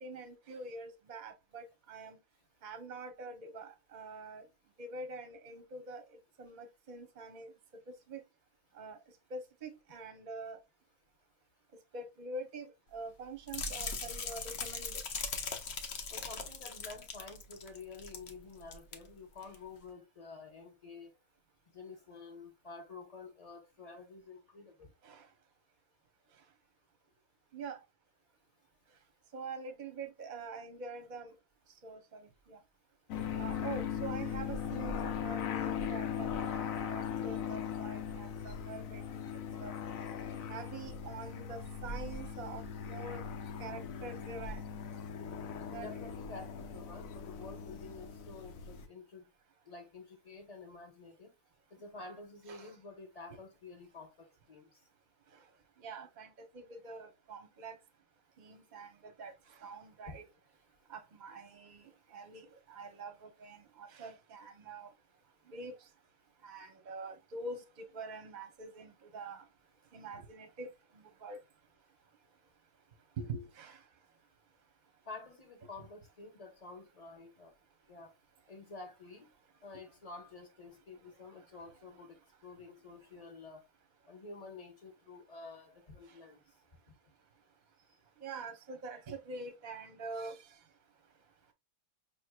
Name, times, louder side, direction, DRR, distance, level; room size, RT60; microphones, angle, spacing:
voice 1, 0.0-2.2 2.6-4.4 4.8-7.5 7.9-8.2 8.7-9.0 9.3-10.6 11.9-15.0 25.0-25.3 27.5-27.8 29.3-31.4 31.8-32.6 33.4-39.3 39.6-39.7 40.5-43.2 43.6-44.6 45.7-45.9 52.5-52.7 53.3-53.4 55.3-55.4 55.8-57.8 58.4-60.3 60.9-64.9 65.5-65.9 66.4-69.5 69.9-71.4 73.2-73.8 79.7-79.8 86.1-86.2 88.2-90.6, right 3 dB, 40° right, 0.7 m, -45 dB
sound 1, 13.5-18.3 18.6-19.0 19.4-19.6, left 4 dB, 55° left, 0.9 m, -40 dB
voice 2, 16.1-21.1 21.7-24.9 45.6-49.2 49.7-51.3 51.7-54.7 60.0-60.2 75.1-77.5 77.9-78.1 78.5-79.3 79.6-83.6 84.1-86.4, left 3 dB, 30° left, 1.0 m, -50 dB
sound 2, 33.1-48.9, left 7 dB, 75° left, 1.1 m, -39 dB
5.3 x 3.1 x 2.2 m
omnidirectional pair, 1.5 m